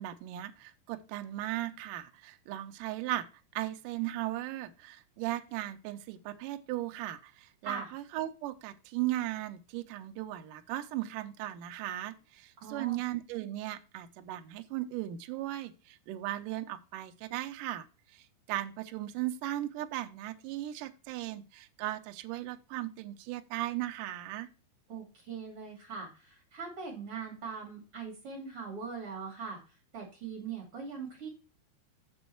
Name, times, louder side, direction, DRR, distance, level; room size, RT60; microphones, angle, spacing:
voice 1, 0.0-3.3 3.6-24.5, right 14 dB, 80° right, 8 dB, 1.9 m, -37 dB
voice 2, 12.6-13.0 24.9-29.6 29.9-31.3, right 5 dB, 40° right, -1 dB, 2.9 m, -41 dB
7.4 x 6.3 x 4.4 m, 0.32 s
omnidirectional pair, 4.5 m